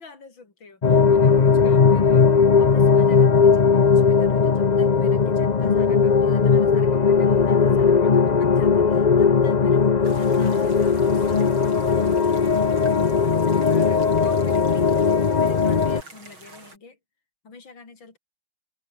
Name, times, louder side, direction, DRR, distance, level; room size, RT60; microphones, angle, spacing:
voice 1, 0.0-11.5 13.7-17.0 17.4-18.2, left 4 dB, 70° left, 5.2 m, -45 dB
sound 1, 0.8-16.0, left 5 dB, 40° left, 0.5 m, -18 dB
sound 2, 10.0-16.8, right 3 dB, 90° right, 7.2 m, -47 dB
omnidirectional pair, 2.2 m